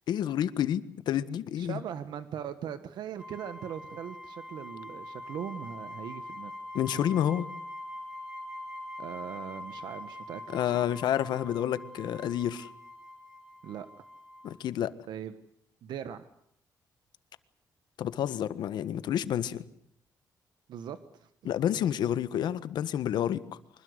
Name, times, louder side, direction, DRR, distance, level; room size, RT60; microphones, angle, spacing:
voice 1, 0.1-1.8 6.7-7.4 10.5-12.7 14.4-14.9 18.0-19.6 21.4-23.4, left 10 dB, 80° left, 14 dB, 1.5 m, -29 dB
voice 2, 1.6-6.5 9.0-10.7 13.6-13.9 15.1-15.3 15.8-16.3 20.7-21.5, right 9 dB, 80° right, 11 dB, 1.4 m, -40 dB
sound 1, 3.2-14.6, left 1 dB, 10° right, 4.4 m, -44 dB
25.5 x 20.5 x 8.1 m, 0.70 s
cardioid pair, 155°, 7 cm